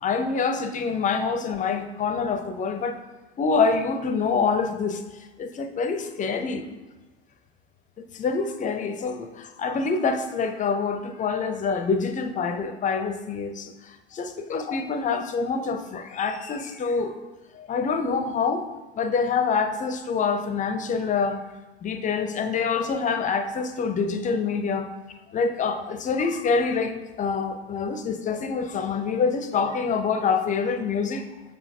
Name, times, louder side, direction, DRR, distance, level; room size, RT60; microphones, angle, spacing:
voice 1, 0.0-3.0 3.4-5.0 5.4-6.7 8.0-17.1 17.5-18.7 18.9-21.4 21.8-24.9 25.3-31.3, left 5 dB, 25° left, 8 dB, 0.5 m, -26 dB
6.9 x 5.0 x 2.7 m, 1.2 s
figure-of-eight pair, 70°, 32 cm